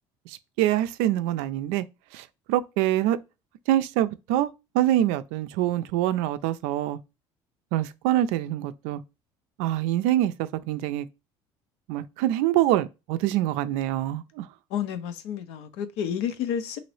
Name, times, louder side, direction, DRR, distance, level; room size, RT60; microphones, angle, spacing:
voice 1, 0.3-1.9 2.1-3.2 3.7-4.5 4.7-7.0 7.7-9.0 9.6-11.1 11.9-14.5, right 13 dB, 80° right, 0.4 m, -25 dB
voice 2, 14.7-16.8, left 8 dB, 75° left, 0.6 m, -30 dB
3.0 x 2.6 x 3.1 m
supercardioid pair, 100°, 11 cm